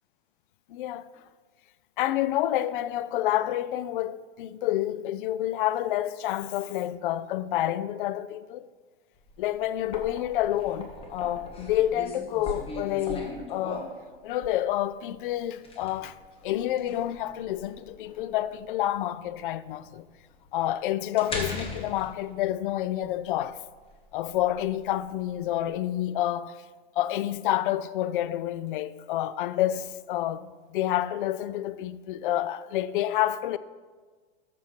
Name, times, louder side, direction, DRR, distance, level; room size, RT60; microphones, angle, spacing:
voice 1, 0.7-1.1 2.0-8.7 9.4-13.9 14.2-16.2 16.4-20.0 20.5-23.6 24.1-26.6 27.0-33.6, left 13 dB, 55° left, 0.5 m, -28 dB
sound 1, 9.2-25.7, left 2 dB, 15° left, 1.6 m, -40 dB
13.0 x 6.3 x 4.5 m
hypercardioid pair, 130°, 31 cm